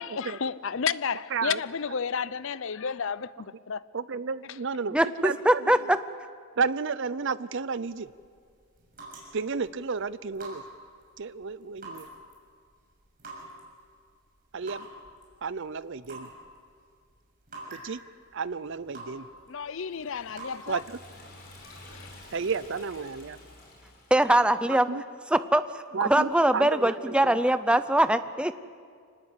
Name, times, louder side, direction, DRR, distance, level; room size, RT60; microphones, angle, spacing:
voice 1, 0.0-3.8 19.5-20.8 21.6-22.2, left 6 dB, 60° left, 0.6 m, -32 dB
voice 2, 3.9-5.6 6.6-8.1 9.3-10.6 11.2-12.1 14.5-14.9 15.4-16.3 17.7-18.0 18.3-19.3 20.7-21.0 22.3-23.4 24.7-25.0 25.9-27.4, right 5 dB, 55° right, 0.6 m, -32 dB
voice 3, 4.9-6.0 24.1-24.9 25.3-28.5, right 1 dB, 5° right, 0.6 m, -22 dB
sound 1, 7.7-21.2, right 2 dB, 40° right, 6.6 m, -48 dB
Liquid, 19.7-24.4, left 1 dB, 40° left, 5.6 m, -50 dB
25.0 x 19.5 x 8.2 m
head